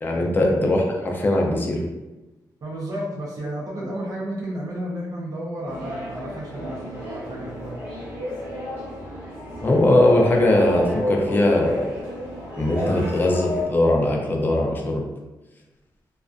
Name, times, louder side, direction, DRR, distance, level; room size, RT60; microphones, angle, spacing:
voice 1, 0.0-1.8 9.6-11.9 12.6-15.0, left 1 dB, 25° left, 0 dB, 0.3 m, -20 dB
voice 2, 2.6-7.8, right 1 dB, 50° right, -5 dB, 0.5 m, -32 dB
sound 1, 5.6-13.6, left 1 dB, 25° right, 0.8 m, -31 dB
2.3 x 2.2 x 2.4 m, 1.1 s
wide cardioid pair, 170°, 8 cm